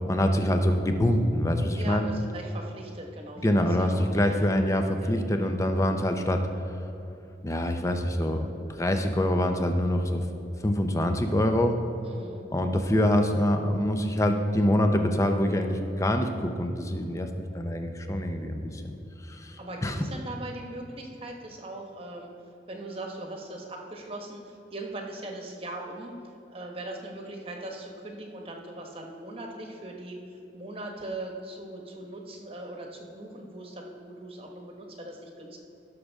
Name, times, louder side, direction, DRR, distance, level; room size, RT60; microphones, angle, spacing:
voice 1, 0.1-2.0 3.4-6.5 7.4-10.3 10.6-11.8 12.5-17.3 17.5-18.8 19.2-20.0, left 1 dB, 15° left, 5 dB, 0.7 m, -25 dB
voice 2, 1.7-4.2 5.0-5.7 12.0-12.5 18.7-18.9 19.6-22.3 22.7-26.1 26.5-35.6, right 1 dB, 30° right, 1 dB, 1.2 m, -40 dB
16.5 x 6.5 x 3.6 m, 2.9 s
head